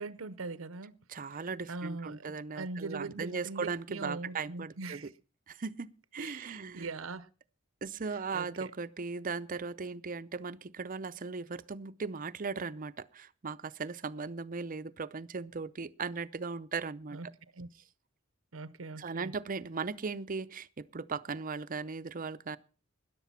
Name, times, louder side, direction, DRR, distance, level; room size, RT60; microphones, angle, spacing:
voice 1, 0.0-1.0 1.7-5.1 6.2-7.3 8.3-8.7 17.1-17.3 17.6-17.7 18.5-19.3, right 3 dB, 80° right, 0.7 m, -41 dB
voice 2, 1.1-5.0 5.5-6.9 7.8-17.3 19.0-22.6, right 4 dB, 40° right, 0.6 m, -38 dB
13.5 x 10.5 x 5.7 m
head